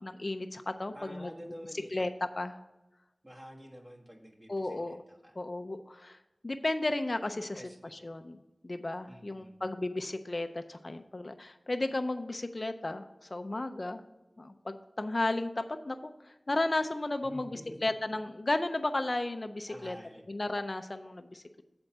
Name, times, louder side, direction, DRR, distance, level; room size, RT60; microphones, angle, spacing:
voice 1, 0.0-1.3 1.9-2.1 2.4-2.6 4.5-5.0 5.4-6.2 6.4-7.6 7.9-8.4 8.6-14.0 14.4-20.0 20.3-21.6, left 2 dB, 50° left, 8 dB, 0.4 m, -34 dB
voice 2, 0.9-2.0 3.2-5.4 7.6-8.1 9.1-9.6 17.2-17.8 19.7-20.2, equal, 30° right, -1 dB, 1.4 m, -49 dB
7.7 x 4.3 x 6.1 m, 1.0 s
wide cardioid pair, 55°, 0 cm